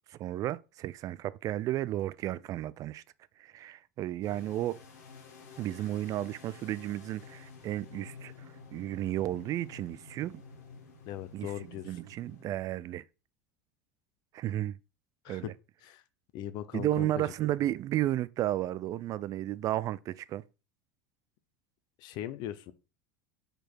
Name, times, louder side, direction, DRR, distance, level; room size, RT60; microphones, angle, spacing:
voice 1, 0.1-3.0 3.4-4.8 5.6-8.3 8.7-10.4 11.3-11.5 11.8-13.0 14.3-14.8 15.3-15.5 16.7-20.4, right 14 dB, 40° right, 0.4 m, -33 dB
sound 1, 4.2-12.8, left 5 dB, 85° left, 2.0 m, -51 dB
voice 2, 11.1-12.0 15.2-15.5 15.8-16.0 16.3-17.2 22.0-22.7, left 11 dB, 55° left, 0.7 m, -39 dB
5.1 x 4.5 x 4.6 m
supercardioid pair, 105°, 9 cm